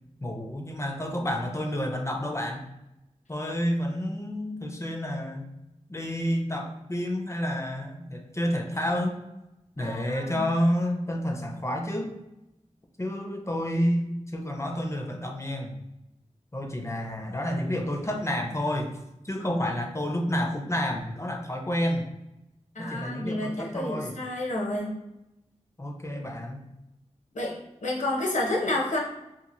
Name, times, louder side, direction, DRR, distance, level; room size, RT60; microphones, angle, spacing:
voice 1, 0.2-2.7 3.3-5.5 5.9-9.2 9.8-12.1 13.0-15.8 16.5-22.1 22.8-24.1 25.8-26.7, equal, 25° left, 2 dB, 0.5 m, -29 dB
voice 2, 9.8-10.5 22.7-24.9 27.3-29.0, left 1 dB, 75° left, -1 dB, 0.7 m, -30 dB
2.9 x 2.5 x 2.5 m, 0.91 s
wide cardioid pair, 80°, 13 cm